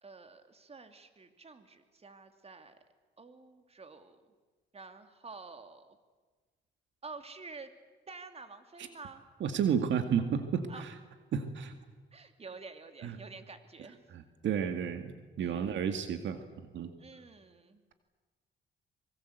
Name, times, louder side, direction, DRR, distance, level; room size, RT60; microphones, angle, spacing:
voice 1, 0.0-2.8 3.2-4.3 4.7-6.0 7.0-7.7 8.1-9.2 10.7-10.9 12.1-14.0 15.4-15.8 16.1-16.2 17.0-17.9, right 4 dB, 30° right, 8 dB, 2.7 m, -49 dB
voice 2, 9.4-10.9 11.3-11.7 13.0-13.2 14.1-16.4 16.7-16.9, right 7 dB, 70° right, 8 dB, 2.1 m, -32 dB
25.5 x 23.5 x 8.1 m, 1.4 s
cardioid pair, 90°, 20 cm